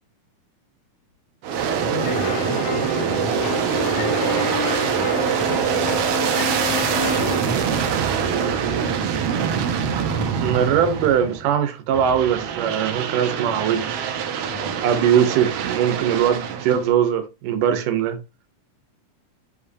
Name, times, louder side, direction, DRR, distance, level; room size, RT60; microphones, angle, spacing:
Aircraft, 1.4-11.5 11.9-16.9, right 7 dB, 70° right, 1.5 m, -24 dB
voice 1, 1.8-6.0 6.7-9.0 14.5-14.8, left 2 dB, 70° left, 4.9 m, -36 dB
sound 1, 2.0-7.4, left 6 dB, 85° left, 3.0 m, -29 dB
voice 2, 10.4-14.0 14.8-18.2, right 9 dB, 85° right, 2.6 m, -21 dB
9.0 x 5.2 x 2.8 m
omnidirectional pair, 3.7 m